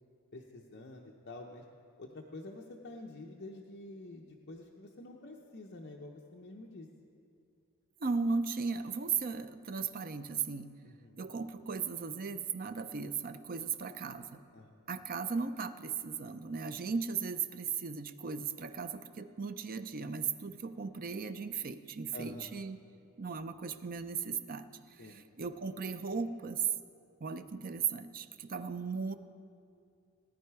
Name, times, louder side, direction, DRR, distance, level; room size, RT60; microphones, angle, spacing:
voice 1, 0.3-1.6 2.0-6.9 10.8-11.2 14.5-14.8 22.1-22.5 25.0-25.2 28.5-28.6, left 2 dB, 50° left, 0 dB, 0.7 m, -48 dB
voice 2, 8.0-10.7 11.2-14.4 14.9-22.8 23.2-24.7 25.0-26.6 27.2-29.1, right 5 dB, 40° right, 10 dB, 0.5 m, -36 dB
17.5 x 9.6 x 4.7 m, 2.5 s
head